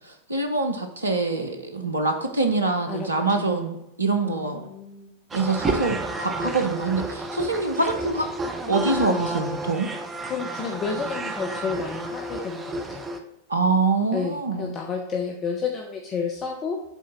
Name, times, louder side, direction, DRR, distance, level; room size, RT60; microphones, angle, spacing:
voice 1, 0.3-4.7 5.3-8.3 8.7-9.9 13.5-14.8, right 3 dB, 80° right, 5 dB, 0.8 m, -25 dB
voice 2, 4.2-5.1 6.4-6.6 10.2-13.1 14.1-16.8, left 5 dB, 30° left, 2 dB, 0.8 m, -31 dB
sound 1, 5.3-13.2, right 2 dB, 20° right, 0.8 m, -31 dB
7.4 x 3.9 x 5.3 m, 0.87 s
figure-of-eight pair, 90°, 0 cm